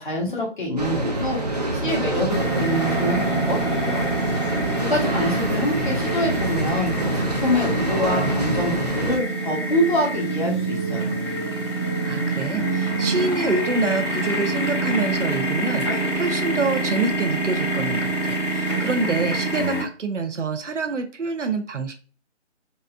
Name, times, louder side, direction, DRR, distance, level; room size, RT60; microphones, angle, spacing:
voice 1, 0.0-1.4 1.7-4.1 4.8-11.1, left 1 dB, 40° left, -2 dB, 1.3 m, -26 dB
sound 1, 0.8-9.2, right 1 dB, 35° right, 0.6 m, -26 dB
sound 2, 2.3-19.8, right 2 dB, 25° left, 1.1 m, -26 dB
voice 2, 12.0-21.9, right 4 dB, 80° right, 7 dB, 0.7 m, -26 dB
4.1 x 2.2 x 2.3 m, 0.36 s
figure-of-eight pair, 160°, 36 cm